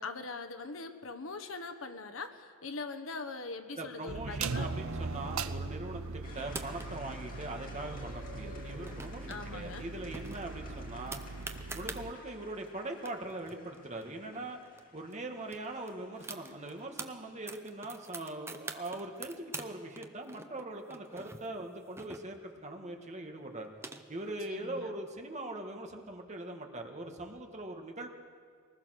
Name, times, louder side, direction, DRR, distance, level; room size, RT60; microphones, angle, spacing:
voice 1, 0.0-4.7 9.3-9.9 24.5-24.9, left 3 dB, 70° left, 8 dB, 1.3 m, -42 dB
voice 2, 3.8-11.2 11.7-14.6 14.9-23.7 24.1-28.1, right 2 dB, 35° right, 3 dB, 1.9 m, -41 dB
sound 1, 4.1-12.1, right 4 dB, 90° right, 0.8 m, -40 dB
sound 2, 6.2-17.9, left 3 dB, 45° left, 2.4 m, -55 dB
sound 3, 6.4-7.1 8.6-9.4 9.7-9.8 10.1-12.0 12.7-12.8 13.0-14.8 15.1-15.2 15.5-17.1 17.5-19.7 20.0-22.6 23.4-24.3, right 3 dB, 10° right, 0.8 m, -45 dB
23.0 x 20.0 x 6.5 m, 2.1 s
head